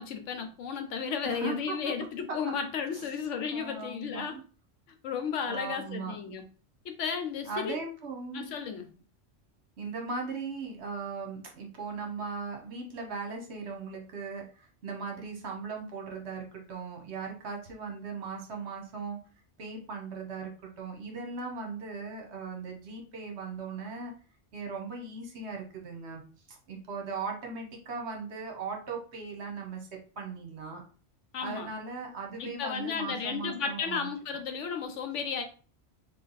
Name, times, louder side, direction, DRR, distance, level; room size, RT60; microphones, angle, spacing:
voice 1, 0.0-4.4 5.0-6.4 6.8-7.8 8.3-8.9 31.3-31.7 32.4-35.4, left 6 dB, 80° left, 6 dB, 1.0 m, -34 dB
voice 2, 1.2-1.9 2.3-2.4 2.9-3.1 3.5-4.4 5.5-6.1 7.4-8.5 9.8-19.2 19.6-24.1 24.5-26.2 26.5-30.8 31.4-34.1, right 4 dB, 65° right, 2 dB, 1.2 m, -38 dB
3.2 x 2.4 x 4.0 m, 0.38 s
omnidirectional pair, 1.2 m